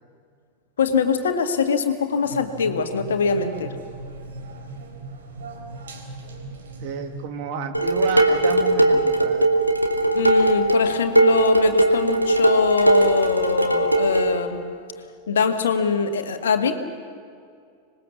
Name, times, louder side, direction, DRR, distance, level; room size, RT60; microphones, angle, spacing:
voice 1, 0.8-3.7 10.1-14.6 15.3-16.8, left 5 dB, 65° left, 6 dB, 1.9 m, -22 dB
sound 1, 2.2-7.3, right 2 dB, 65° right, 4.0 m, -38 dB
voice 2, 6.8-9.5, right 6 dB, 45° right, 4 dB, 2.5 m, -31 dB
Dishes pots and pans, 7.7-14.4, right 1 dB, 90° right, 1.9 m, -19 dB
26.0 x 20.5 x 7.3 m, 2.3 s
figure-of-eight pair, 90°, 0 cm